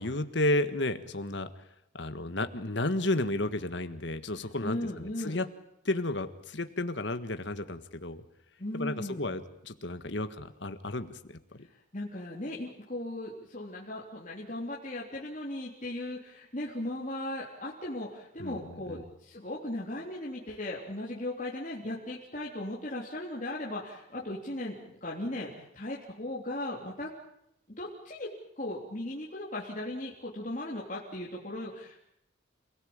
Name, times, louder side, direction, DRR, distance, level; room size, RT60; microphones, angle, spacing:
voice 1, 0.0-1.5 1.9-5.5 5.8-8.2 8.7-11.7 18.4-19.0, left 2 dB, 65° left, 10 dB, 1.6 m, -32 dB
voice 2, 4.6-5.4 8.6-9.3 11.9-27.1 27.8-28.3 28.6-32.0, left 1 dB, 40° left, -4 dB, 3.4 m, -37 dB
28.5 x 17.5 x 8.8 m, 0.78 s
head